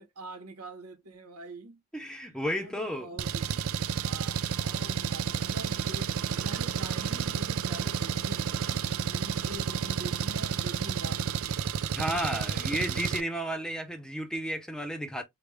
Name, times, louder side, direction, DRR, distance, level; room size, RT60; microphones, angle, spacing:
voice 1, 0.0-3.6 4.0-8.8 9.1-11.7 12.2-12.9 13.4-13.6, right 2 dB, 90° right, 1.1 m, -45 dB
voice 2, 1.9-3.1 11.9-15.2, equal, 5° left, 0.7 m, -32 dB
Engine, 3.2-13.2, right 7 dB, 65° right, 0.4 m, -31 dB
5.2 x 2.3 x 3.1 m
head